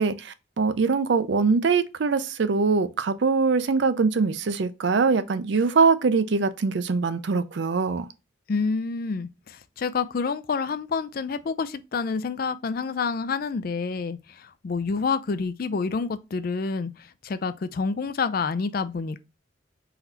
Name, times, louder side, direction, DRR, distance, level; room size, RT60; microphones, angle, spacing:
voice 1, 0.0-8.1, right 4 dB, 60° right, 0.4 m, -23 dB
voice 2, 8.5-19.2, left 4 dB, 45° left, 0.4 m, -28 dB
4.0 x 2.7 x 4.3 m
head